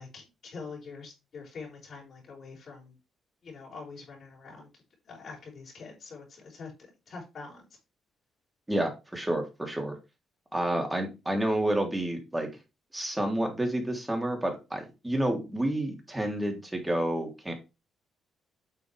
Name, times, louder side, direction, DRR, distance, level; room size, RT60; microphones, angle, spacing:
voice 1, 0.0-2.9 3.4-4.7 5.1-6.7 7.1-7.6, left 4 dB, 55° left, 4.8 m, -44 dB
voice 2, 8.7-10.0 10.5-12.5 12.9-17.5, right 1 dB, 10° right, 3.2 m, -29 dB
9.4 x 6.3 x 3.4 m
cardioid pair, 90°, 0 cm